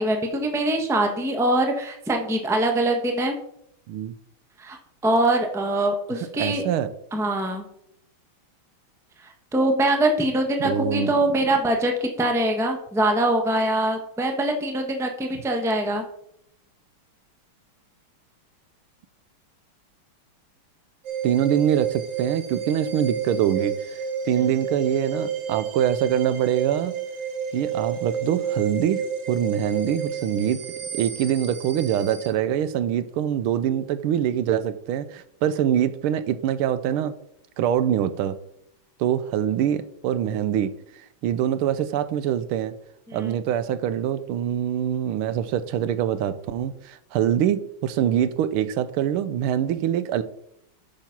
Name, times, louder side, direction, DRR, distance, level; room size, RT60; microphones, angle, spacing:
voice 1, 0.0-3.3 4.6-4.8 5.0-6.6 7.1-7.7 9.5-16.0 43.1-43.3, right 1 dB, ahead, 4 dB, 0.8 m, -23 dB
voice 2, 6.1-6.9 10.6-11.1 21.2-23.8 24.3-26.9 27.5-30.6 30.9-37.1 37.6-38.4 39.0-40.7 41.2-42.7 43.1-50.2, right 10 dB, 85° right, 13 dB, 1.6 m, -24 dB
sound 1, 21.0-32.3, right 7 dB, 60° right, 1.7 m, -30 dB
8.7 x 5.9 x 5.9 m, 0.74 s
omnidirectional pair, 2.3 m